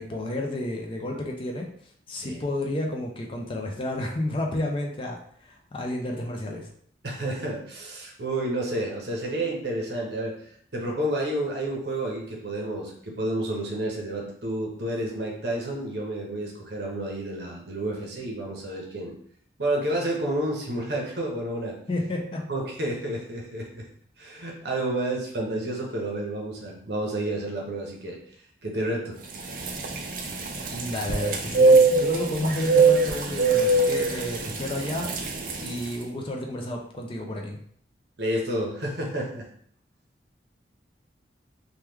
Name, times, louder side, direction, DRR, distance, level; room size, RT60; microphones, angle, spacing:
voice 1, 0.0-1.7 2.1-6.7 21.9-22.4 30.7-37.6, left 1 dB, 30° left, 1 dB, 0.4 m, -31 dB
voice 2, 7.0-10.4 10.7-19.1 19.6-21.8 22.5-23.8 24.2-28.2 28.6-29.2 38.2-39.5, right 1 dB, 60° right, -1 dB, 0.8 m, -30 dB
sound 1, 29.3-35.9, right 3 dB, 45° right, 0.4 m, -23 dB
3.0 x 2.2 x 3.4 m, 0.63 s
head